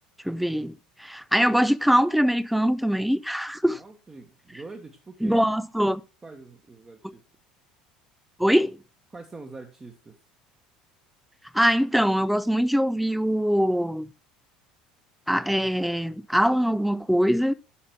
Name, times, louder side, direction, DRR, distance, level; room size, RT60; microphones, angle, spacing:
voice 1, 0.2-0.7 1.0-3.8 5.2-6.0 8.4-8.8 11.5-14.1 15.3-17.5, equal, ahead, 0.6 m, -22 dB
voice 2, 3.7-5.4 6.2-7.2 9.1-10.1, right 3 dB, 20° right, 1.6 m, -44 dB
10.0 x 6.6 x 6.1 m
figure-of-eight pair, 65°, 4 cm